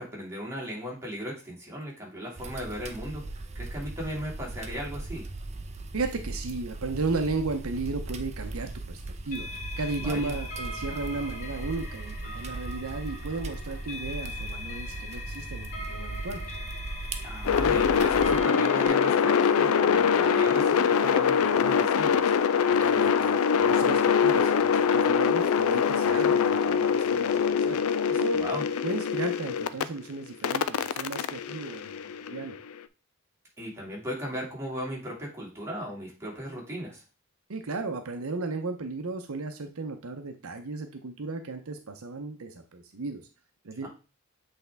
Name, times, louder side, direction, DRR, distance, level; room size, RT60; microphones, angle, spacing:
voice 1, 0.0-3.2 3.5-5.3 10.0-10.3 17.2-22.4 28.3-28.6 33.6-37.0 43.8-43.9, equal, 10° right, -4 dB, 2.2 m, -37 dB
sound 1, 2.4-18.4, right 2 dB, 30° right, 0.6 m, -38 dB
voice 2, 5.9-9.5 9.8-16.4 22.8-23.3 23.6-27.8 28.1-28.4 28.8-32.0 32.3-32.6 37.5-43.2 43.6-43.9, right 3 dB, 75° right, 6 dB, 0.7 m, -35 dB
sound 2, 9.3-18.9, left 2 dB, 40° left, 1.4 m, -41 dB
sound 3, 17.5-29.8 30.4-32.6, left 7 dB, 85° left, 0.4 m, -23 dB
8.0 x 3.5 x 3.4 m, 0.33 s
head